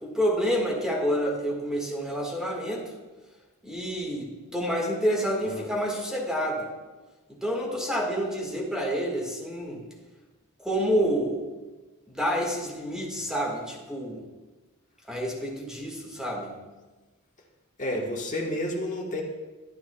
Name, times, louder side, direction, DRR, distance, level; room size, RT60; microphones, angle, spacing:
voice 1, 0.0-2.9 3.6-6.7 7.3-9.8 10.6-11.4 12.1-14.2 15.1-16.6, equal, 5° right, -2 dB, 1.8 m, -28 dB
voice 2, 17.8-19.2, left 1 dB, 35° left, 0 dB, 1.4 m, -30 dB
11.5 x 9.4 x 2.3 m, 1.2 s
head